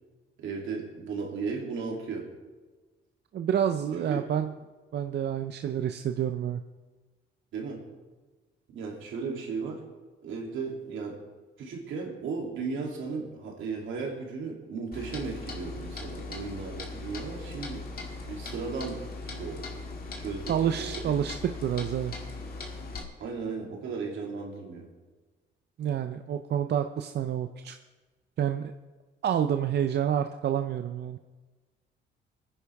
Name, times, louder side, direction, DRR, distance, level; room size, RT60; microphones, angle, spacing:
voice 1, 0.4-2.3 3.9-4.3 7.5-7.8 8.7-9.8 10.2-11.2 11.6-17.9 18.3-19.8 20.2-21.2 23.2-24.9, right 4 dB, 80° right, -1 dB, 3.0 m, -36 dB
voice 2, 3.3-4.5 4.9-6.6 20.5-21.4 21.6-22.1 25.8-27.7 28.4-28.7 29.2-31.2, right 9 dB, 60° right, 7 dB, 0.6 m, -28 dB
Clock, 14.9-23.0, left 3 dB, 50° left, 2.2 m, -39 dB
22.0 x 10.0 x 3.5 m, 1.3 s
cardioid pair, 90°, 20 cm